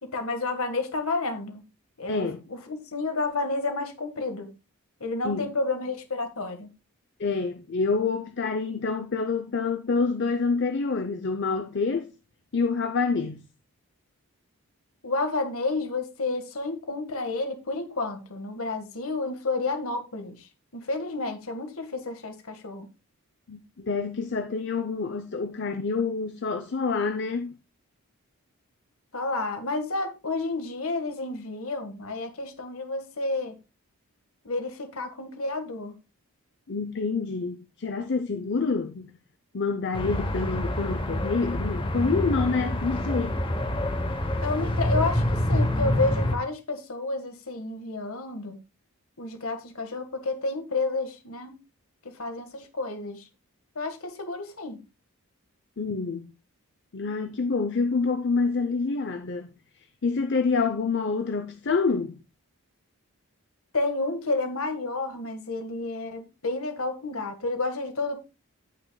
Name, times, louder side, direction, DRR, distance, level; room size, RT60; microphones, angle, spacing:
voice 1, 0.0-1.6 2.0-4.5 5.0-6.7 15.0-22.9 29.1-33.6 34.4-35.9 44.4-48.6 49.2-51.5 52.0-53.3 53.7-54.8 63.7-68.2, left 3 dB, 70° left, 1.6 m, -30 dB
voice 2, 2.1-2.4 5.2-5.5 7.2-12.1 12.5-13.4 23.5-27.5 36.7-39.1 39.5-43.4 55.8-56.3 56.9-59.5 60.0-62.2, left 4 dB, 50° left, 0.7 m, -27 dB
Highway Far Perspective, 39.9-46.4, left 1 dB, 25° left, 1.0 m, -27 dB
15.5 x 6.0 x 2.3 m
head